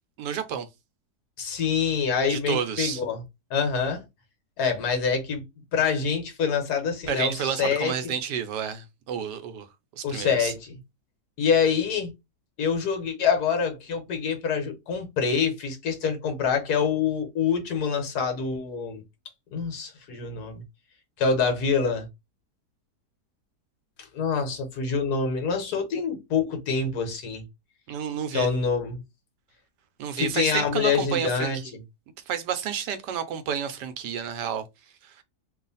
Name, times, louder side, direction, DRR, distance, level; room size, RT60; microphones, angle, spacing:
voice 1, 0.2-0.7 2.3-3.0 7.1-9.7 10.0-10.5 27.9-28.5 30.0-31.7 32.3-34.6 35.0-35.2, right 8 dB, 85° right, 1.3 m, -30 dB
voice 2, 1.4-3.2 3.5-4.0 4.6-5.4 5.7-8.1 10.0-10.8 11.4-12.1 12.6-19.0 19.5-20.6 21.2-22.1 24.0-27.4 28.3-29.0 30.2-31.8, left 6 dB, 70° left, 1.4 m, -26 dB
3.1 x 2.4 x 3.9 m
omnidirectional pair, 1.8 m